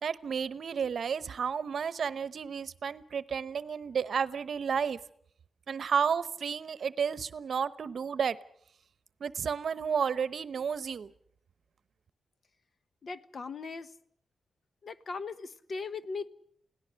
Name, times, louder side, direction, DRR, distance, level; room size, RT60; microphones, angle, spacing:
voice 1, 0.0-5.0 5.7-8.4 9.2-11.1, right 6 dB, 65° right, 17 dB, 0.9 m, -32 dB
voice 2, 13.0-13.9 14.8-16.3, left 4 dB, 50° left, 14 dB, 1.0 m, -39 dB
29.0 x 17.5 x 6.5 m, 0.66 s
cardioid pair, 95°, 0 cm